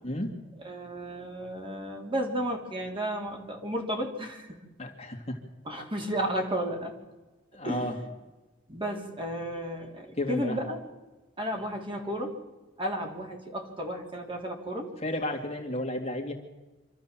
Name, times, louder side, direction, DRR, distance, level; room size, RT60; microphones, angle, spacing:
voice 1, 0.0-0.4 4.8-5.4 7.5-7.9 10.2-10.6 15.0-16.3, left 1 dB, 35° left, 2 dB, 2.4 m, -32 dB
voice 2, 0.6-4.6 5.6-7.0 7.6-8.0 8.7-10.8 11.4-12.4 12.8-14.9, equal, 25° right, 2 dB, 3.2 m, -33 dB
26.0 x 13.0 x 7.5 m, 1.2 s
head